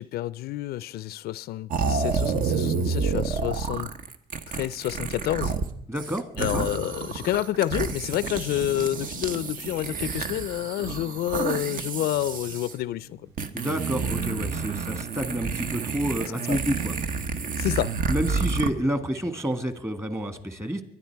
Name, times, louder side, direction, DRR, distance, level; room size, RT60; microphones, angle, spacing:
voice 1, 0.0-3.9 4.5-5.5 6.4-13.2 16.5-16.6 17.6-18.0, left 14 dB, 70° left, 0.4 m, -29 dB
sound 1, 1.7-5.7 6.0-12.7 13.4-18.7, right 5 dB, 55° right, 1.1 m, -29 dB
voice 2, 5.9-6.6 13.5-16.9 18.1-20.8, right 1 dB, 15° right, 1.6 m, -29 dB
sound 2, 11.0-19.8, right 1 dB, 75° right, 6.0 m, -56 dB
23.0 x 10.0 x 4.6 m
cardioid pair, 110°, 17 cm